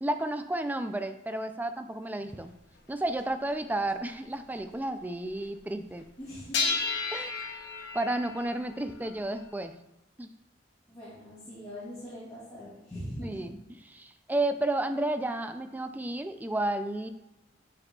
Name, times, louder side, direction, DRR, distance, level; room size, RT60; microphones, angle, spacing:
voice 1, 0.0-2.5 2.9-6.0 7.1-7.3 7.9-9.7 10.2-10.3 13.2-17.1, right 1 dB, 10° right, 8 dB, 0.3 m, -32 dB
sound 1, 2.2-2.3 3.2-3.3 3.8-3.9 4.3-4.6 6.5-9.7, left 4 dB, 65° left, 0.8 m, -33 dB
voice 2, 6.2-6.9 10.9-13.4, equal, 20° left, -11 dB, 2.3 m, -42 dB
9.5 x 4.9 x 2.3 m, 0.94 s
head